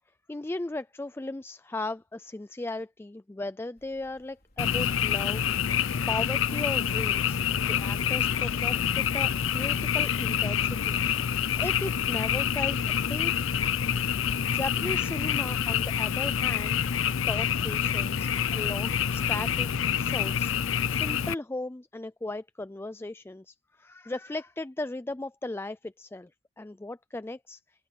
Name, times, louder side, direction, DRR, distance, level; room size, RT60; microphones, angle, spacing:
voice 1, 0.3-7.4 7.7-11.0 11.3-13.3 14.5-16.8 17.3-19.7 19.9-26.3 26.6-27.6, left 2 dB, 10° left, 0.3 m, -37 dB
sound 1, 3.8-9.2, left 1 dB, 50° left, 4.5 m, -63 dB
Frog, 4.6-21.3, left 8 dB, 85° left, 0.5 m, -27 dB
open air
head